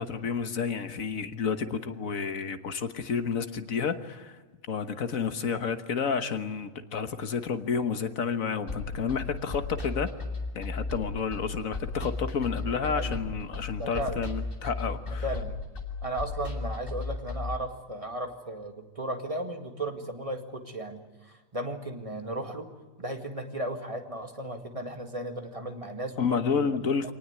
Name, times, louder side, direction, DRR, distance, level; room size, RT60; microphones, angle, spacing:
voice 1, 0.0-4.4 4.7-10.1 10.6-15.3 26.2-27.1, left 6 dB, 80° left, 1.7 m, -30 dB
sound 1, 8.7-17.6, left 3 dB, 40° left, 3.0 m, -35 dB
voice 2, 13.8-14.2 15.1-15.6 16.0-22.7 23.0-26.7 27.0-27.1, right 1 dB, 25° right, 2.1 m, -35 dB
25.5 x 19.0 x 9.6 m
omnidirectional pair, 1.4 m